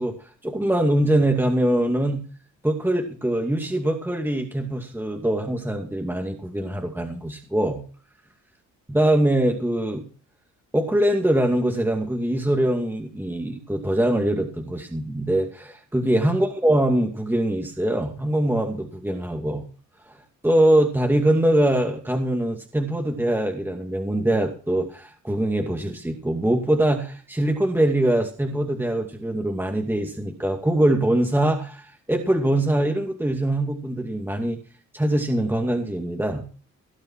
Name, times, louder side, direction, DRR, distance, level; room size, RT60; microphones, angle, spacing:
voice 1, 0.0-2.2 2.6-7.8 8.9-10.0 10.7-19.6 20.1-20.2 20.4-34.6 34.9-36.4, right 1 dB, 5° right, 2 dB, 2.4 m, -23 dB
18.0 x 7.7 x 5.9 m, 0.40 s
cardioid pair, 90°, 30 cm